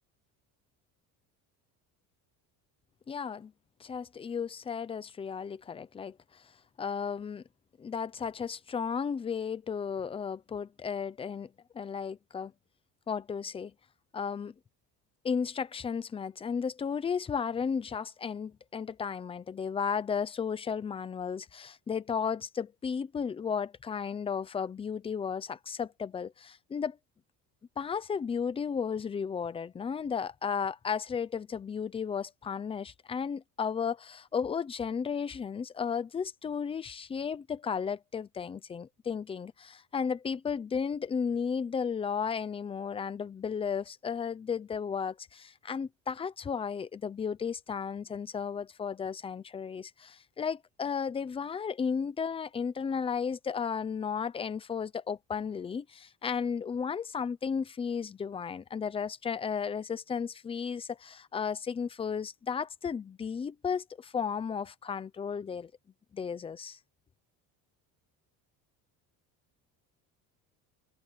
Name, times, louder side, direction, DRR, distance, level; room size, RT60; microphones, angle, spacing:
voice 1, 3.1-3.5 3.8-6.4 6.8-7.4 7.8-12.5 13.1-13.7 14.1-14.5 15.2-27.0 27.8-65.7 66.1-66.8, left 6 dB, 15° left, 0.7 m, -34 dB
cardioid pair, 170°, 36 cm